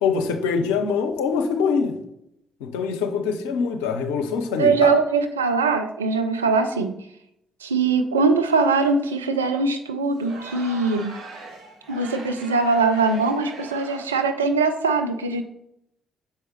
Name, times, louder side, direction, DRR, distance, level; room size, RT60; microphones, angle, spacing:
voice 1, 0.0-2.0 2.6-5.0, left 5 dB, 75° left, 6 dB, 0.5 m, -24 dB
voice 2, 4.6-6.9 7.6-11.2 11.9-15.4, right 4 dB, 90° right, 6 dB, 0.4 m, -21 dB
Crowd, 10.1-14.3, right 3 dB, 70° right, 1.2 m, -40 dB
6.8 x 4.7 x 3.1 m, 0.80 s
figure-of-eight pair, 40°, 0 cm